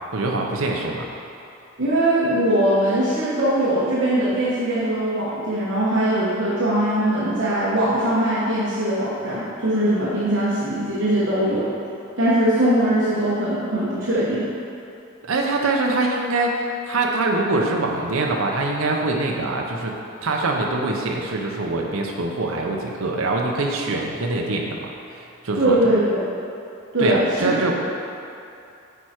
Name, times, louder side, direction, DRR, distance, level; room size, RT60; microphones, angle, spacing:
voice 1, 0.1-1.1 15.2-19.9 20.2-25.8 27.0-27.9, right 2 dB, 80° right, 0 dB, 0.7 m, -24 dB
voice 2, 1.8-11.6 12.2-14.4 25.6-26.0 26.9-27.5, right 1 dB, 60° right, -9 dB, 1.3 m, -21 dB
9.3 x 4.6 x 4.4 m, 2.6 s
head